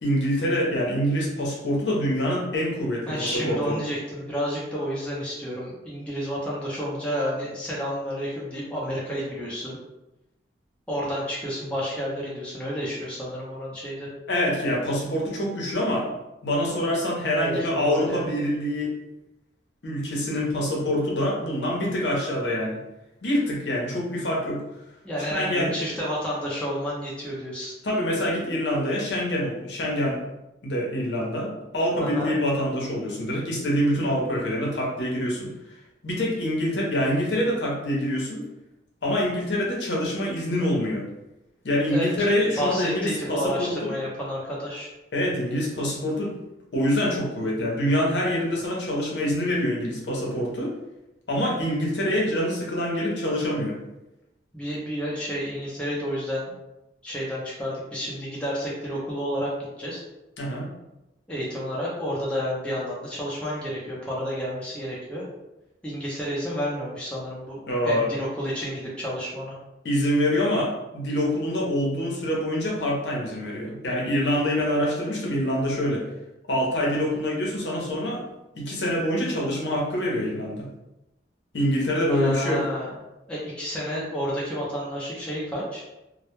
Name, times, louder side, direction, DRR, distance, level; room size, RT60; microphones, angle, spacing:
voice 1, 0.0-3.8 14.3-16.1 16.4-18.9 19.8-22.8 23.2-24.6 25.3-25.7 27.8-30.2 30.6-35.5 36.0-38.4 39.0-41.0 41.6-43.9 45.1-46.3 46.7-50.7 51.3-53.8 60.4-60.7 67.7-68.1 69.8-76.1 76.5-78.2 78.5-80.7 81.5-82.6, equal, 65° left, -2 dB, 0.6 m, -25 dB
voice 2, 3.1-9.8 10.9-14.1 16.7-16.8 17.4-18.3 25.0-27.7 32.0-32.4 41.9-42.3 42.6-44.9 54.5-56.5 57.0-59.5 59.8-60.0 61.3-65.3 65.8-67.6 67.8-69.5 82.1-82.9 83.3-86.0, equal, 5° left, -6 dB, 0.5 m, -30 dB
2.1 x 2.1 x 3.0 m, 0.94 s
head